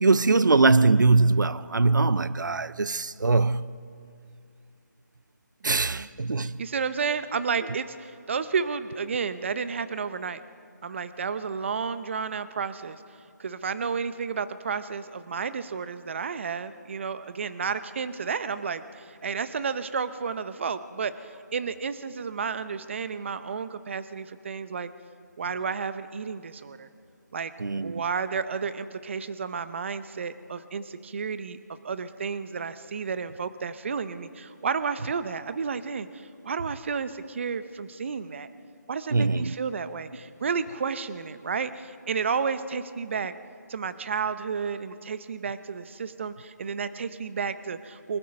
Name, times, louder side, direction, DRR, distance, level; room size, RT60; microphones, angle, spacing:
voice 1, 0.0-3.8 5.6-6.6 27.6-28.0 39.1-39.5, right 3 dB, 85° right, 0.6 m, -22 dB
voice 2, 5.6-6.1 6.4-10.4 10.8-13.0 13.4-24.9 25.4-26.9 27.3-27.5 27.8-38.5 38.9-43.3 43.7-48.2, right 5 dB, 40° right, 0.8 m, -32 dB
29.0 x 20.0 x 5.3 m
figure-of-eight pair, 160°, 10 cm